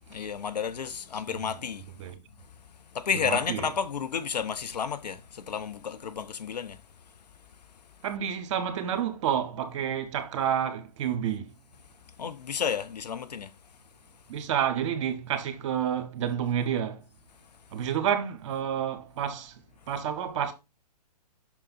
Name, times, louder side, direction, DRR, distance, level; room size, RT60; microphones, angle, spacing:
voice 1, 0.1-1.8 2.9-6.8 12.2-13.5, left 7 dB, 75° left, 0.9 m, -31 dB
voice 2, 3.3-3.7 8.0-11.5 14.3-17.0 17.7-19.5 19.9-20.5, right 9 dB, 45° right, 1.2 m, -29 dB
6.2 x 3.9 x 4.1 m
hypercardioid pair, 135°, 21 cm